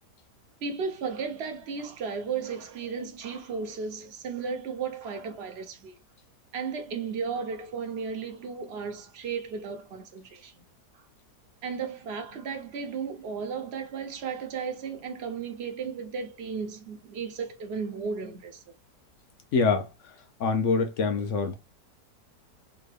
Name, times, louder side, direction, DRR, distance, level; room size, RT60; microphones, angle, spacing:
voice 1, 0.6-5.9 6.5-10.5 11.6-18.6, right 5 dB, 70° right, 0.6 m, -34 dB
voice 2, 19.5-19.9 20.4-21.5, left 4 dB, 70° left, 0.7 m, -24 dB
3.7 x 2.2 x 3.2 m
omnidirectional pair, 1.8 m